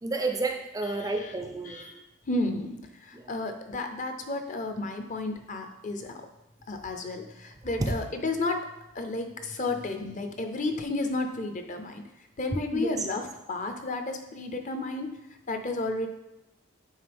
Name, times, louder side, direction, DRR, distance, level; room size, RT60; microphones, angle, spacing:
voice 1, 0.0-1.9 3.1-3.5 7.8-8.0 12.5-13.1, right 2 dB, 15° right, 4 dB, 0.4 m, -31 dB
voice 2, 1.7-2.0 2.3-2.7 3.1-6.1 6.7-8.6 8.9-12.0 12.4-15.1 15.5-16.1, left 2 dB, 40° left, 6 dB, 0.6 m, -32 dB
9.1 x 3.7 x 3.5 m, 0.91 s
head